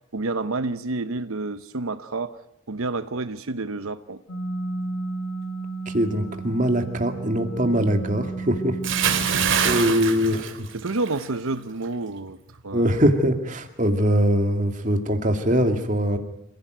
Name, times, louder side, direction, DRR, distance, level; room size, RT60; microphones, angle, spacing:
voice 1, 0.1-2.4 2.7-4.2 9.2-10.0 10.4-12.9, right 3 dB, 85° right, 0.9 m, -30 dB
sound 1, 4.3-9.8, right 3 dB, 70° left, 1.5 m, -32 dB
voice 2, 5.9-9.2 9.6-10.7 12.7-16.2, equal, 35° right, 2.4 m, -22 dB
Bathtub (filling or washing) / Splash splatter, 8.8-11.3 11.6-11.9, right 7 dB, 65° right, 2.7 m, -24 dB
28.0 x 16.0 x 9.2 m
head